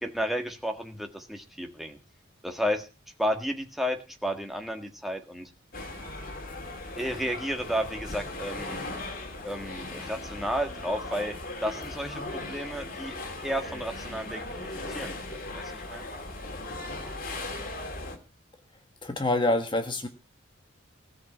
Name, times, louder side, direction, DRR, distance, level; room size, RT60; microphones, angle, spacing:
voice 1, 0.0-2.0 2.4-2.9 3.2-5.5 7.0-8.8 9.4-11.3 11.6-13.2 13.4-16.1, equal, ahead, 4 dB, 1.6 m, -32 dB
sound 1, 5.7-18.2, left 2 dB, 40° left, 2.8 m, -38 dB
voice 2, 19.0-20.1, left 2 dB, 25° left, 6 dB, 1.4 m, -26 dB
17.5 x 6.4 x 8.4 m, 0.33 s
head